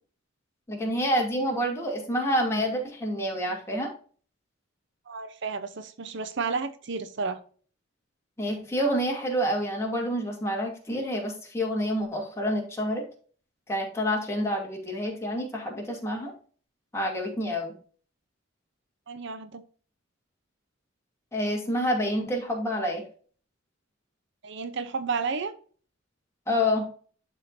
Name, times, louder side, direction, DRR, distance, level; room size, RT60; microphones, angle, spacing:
voice 1, 0.7-3.9 8.4-13.0 13.7-16.3 16.9-17.7 21.3-23.0 26.5-26.8, equal, 15° left, 2.5 m, -28 dB
voice 2, 5.1-7.4 19.1-19.6 24.4-25.5, right 4 dB, 65° right, 0.7 m, -32 dB
11.0 x 5.0 x 2.6 m
head